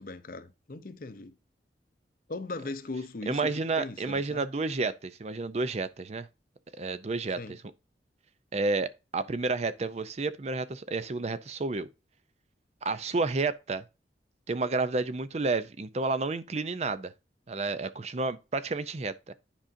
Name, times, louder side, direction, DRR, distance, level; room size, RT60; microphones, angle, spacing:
voice 1, 0.0-1.4 2.3-4.4 7.4-7.6, left 3 dB, 50° left, 0.7 m, -39 dB
voice 2, 3.3-6.3 6.7-7.6 8.5-11.9 12.8-13.8 14.5-17.1 17.5-19.3, right 3 dB, 40° right, 0.5 m, -30 dB
10.0 x 5.0 x 2.6 m
head